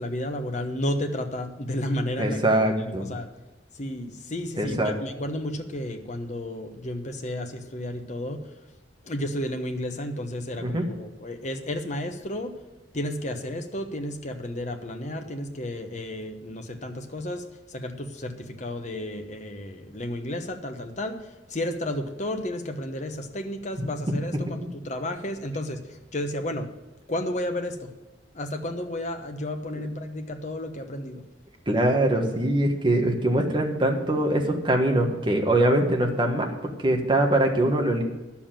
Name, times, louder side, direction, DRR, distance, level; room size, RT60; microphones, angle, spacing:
voice 1, 0.0-2.4 2.8-3.3 3.7-8.5 9.0-12.5 12.9-26.7 27.1-27.9 28.3-31.2, left 1 dB, 40° left, 5 dB, 1.1 m, -32 dB
voice 2, 2.2-3.1 4.6-4.9 10.6-10.8 29.8-29.9 31.7-38.0, right 1 dB, 25° right, 2 dB, 1.5 m, -23 dB
11.0 x 7.2 x 7.5 m, 1.2 s
head